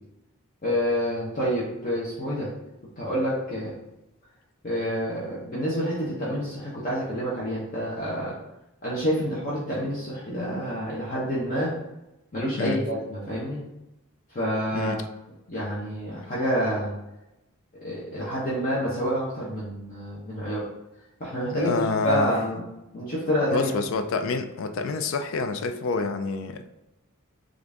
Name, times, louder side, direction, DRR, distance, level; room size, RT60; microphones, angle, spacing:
voice 1, 0.6-2.5 3.0-3.7 4.6-8.3 8.8-11.7 12.3-13.6 14.3-15.0 15.5-16.9 17.8-20.6 21.2-22.6 22.9-23.7, equal, 40° left, -7 dB, 0.8 m, -28 dB
voice 2, 21.5-22.3 23.5-26.7, left 4 dB, 65° left, 7 dB, 0.3 m, -28 dB
3.8 x 2.5 x 3.4 m, 0.92 s
head